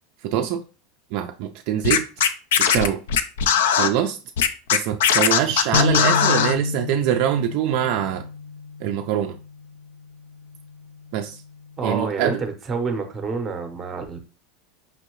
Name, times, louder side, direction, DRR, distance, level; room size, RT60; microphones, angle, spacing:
voice 1, 0.2-0.6 1.1-2.0 2.6-3.0 3.7-4.2 4.7-8.3 8.8-9.4 11.1-11.4 11.8-12.4, right 10 dB, 45° right, 0.3 m, -24 dB
Scratching (performance technique), 1.8-3.9 4.4-6.5, left 8 dB, 90° left, 0.5 m, -19 dB
sound 1, 5.7-12.0, left 4 dB, 35° left, 0.4 m, -30 dB
voice 2, 11.8-14.2, right 4 dB, 10° right, 0.6 m, -28 dB
5.4 x 2.7 x 3.0 m
supercardioid pair, 175°, 0 cm